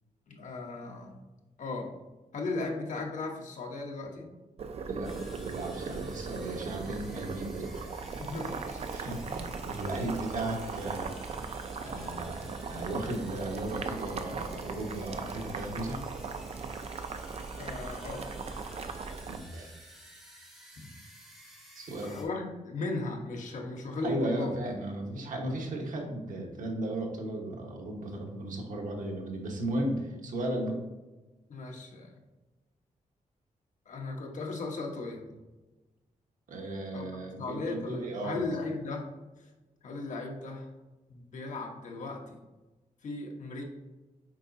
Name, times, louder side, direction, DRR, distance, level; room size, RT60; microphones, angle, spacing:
voice 1, 0.3-1.2 1.6-1.9 2.3-4.3 8.2-8.9 17.6-18.3 22.0-24.5 31.5-32.2 33.9-35.2 36.9-37.0 37.4-39.1 39.4-39.5 39.8-40.7 41.1-42.4 43.0-43.6, left 3 dB, 65° left, 1 dB, 1.1 m, -36 dB
Boiling, 4.6-19.4, right 4 dB, 50° right, 0.5 m, -38 dB
voice 2, 4.9-7.7 8.9-11.2 11.8-16.0 19.3-19.7 21.7-22.2 24.0-30.8 36.5-38.4, right 1 dB, 80° right, 1 dB, 1.3 m, -35 dB
sound 1, 5.0-22.2, equal, ahead, 1.7 m, -53 dB
7.5 x 4.8 x 2.7 m, 1.1 s
wide cardioid pair, 160°, 13 cm